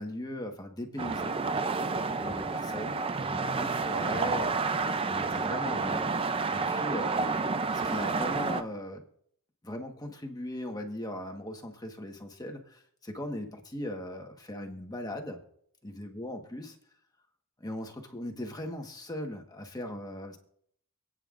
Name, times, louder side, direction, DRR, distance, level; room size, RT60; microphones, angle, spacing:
voice 1, 0.0-1.4 2.2-4.6 5.0-6.1 6.5-7.4 7.7-9.0 9.6-15.4 15.8-16.7 17.6-20.4, left 1 dB, 15° left, 3 dB, 1.3 m, -38 dB
sound 1, 1.0-8.6, right 4 dB, 25° right, 0.4 m, -30 dB
27.0 x 9.1 x 2.5 m, 0.68 s
head